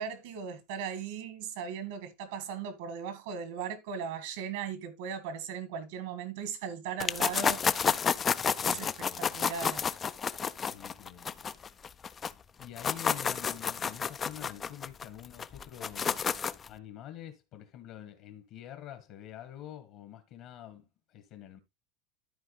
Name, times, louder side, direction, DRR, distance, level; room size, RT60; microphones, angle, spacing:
voice 1, 0.0-7.6 7.9-8.0 8.6-9.8, right 7 dB, 75° right, 1.8 m, -38 dB
sound 1, 7.0-12.3 12.6-16.7, left 6 dB, 25° left, 0.4 m, -30 dB
voice 2, 8.6-9.4 10.7-11.5 12.0-12.2 12.6-21.6, left 11 dB, 50° left, 1.5 m, -47 dB
13.0 x 4.5 x 3.2 m
supercardioid pair, 135°, 0 cm